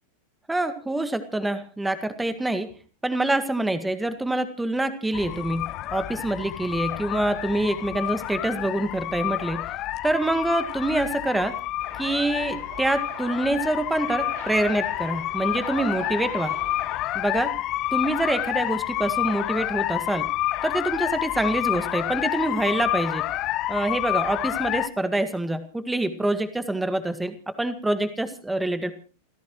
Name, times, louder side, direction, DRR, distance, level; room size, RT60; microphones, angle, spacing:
voice 1, 0.5-2.7 3.0-9.6 10.0-11.5 12.0-16.5 17.1-17.5 17.9-20.3 20.6-23.2 23.7-28.9, right 1 dB, 5° right, 11 dB, 1.8 m, -26 dB
sound 1, 5.1-24.9, left 15 dB, 35° left, 1.1 m, -29 dB
sound 2, 11.8-17.0, right 6 dB, 50° right, 6.9 m, -42 dB
29.0 x 15.5 x 3.1 m, 0.37 s
figure-of-eight pair, 90°, 0 cm